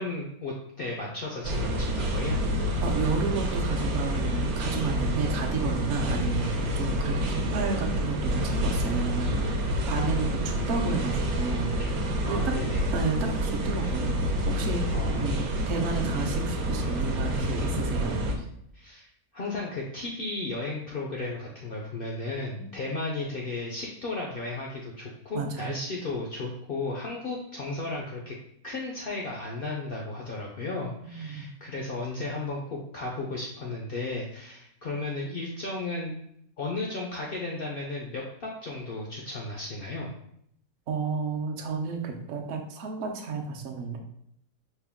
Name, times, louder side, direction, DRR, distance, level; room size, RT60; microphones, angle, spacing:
voice 1, 0.0-2.4 11.8-11.9 12.2-12.8 14.9-15.4 18.7-28.3 28.6-36.2 36.6-40.1, left 2 dB, 70° left, -1 dB, 0.5 m, -34 dB
sound 1, 1.4-18.3, equal, 85° right, 1.2 m, -28 dB
voice 2, 2.8-9.6 9.9-11.9 12.3-12.4 12.9-14.2 14.5-14.8 15.2-18.2 22.5-22.9 25.3-25.8 31.0-31.5 40.9-44.0, right 4 dB, 65° right, 2 dB, 0.8 m, -32 dB
4.4 x 2.1 x 3.5 m, 0.71 s
omnidirectional pair, 1.5 m